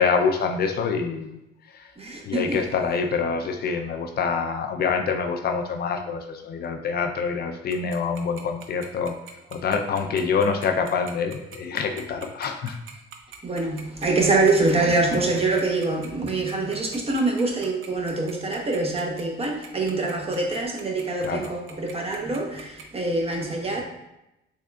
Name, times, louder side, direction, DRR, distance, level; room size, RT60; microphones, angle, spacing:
voice 1, 0.0-1.3 2.3-9.2 9.5-12.8 21.2-21.5, left 5 dB, 55° left, 5 dB, 0.4 m, -26 dB
voice 2, 2.0-2.6 13.4-23.8, right 3 dB, 30° right, 1 dB, 0.8 m, -25 dB
Tick-tock, 7.7-22.8, right 8 dB, 80° right, 0.5 m, -43 dB
3.6 x 3.3 x 2.2 m, 0.89 s
cardioid pair, 90°, 20 cm